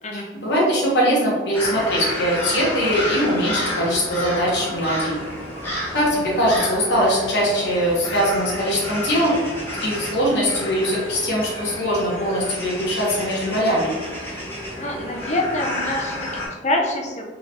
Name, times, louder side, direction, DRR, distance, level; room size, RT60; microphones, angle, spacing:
voice 1, 0.1-5.2 5.9-9.3 9.8-13.9, equal, 75° left, -5 dB, 1.3 m, -21 dB
sound 1, 1.5-16.5, left 1 dB, 15° left, 1.1 m, -30 dB
voice 2, 14.8-17.2, left 1 dB, 40° left, 2 dB, 0.7 m, -26 dB
3.9 x 3.7 x 3.0 m, 1.3 s
head